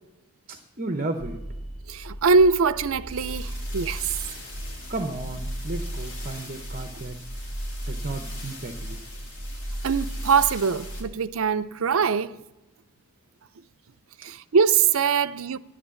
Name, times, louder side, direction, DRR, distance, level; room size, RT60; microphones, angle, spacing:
voice 1, 0.5-1.4 4.9-7.2 7.9-9.0, right 2 dB, 40° right, 0.8 m, -33 dB
sound 1, 1.2-11.0, equal, 55° left, 3.1 m, -35 dB
voice 2, 1.9-4.1 9.8-12.4 14.2-15.6, right 5 dB, 70° right, 0.5 m, -22 dB
11.5 x 10.0 x 7.0 m
head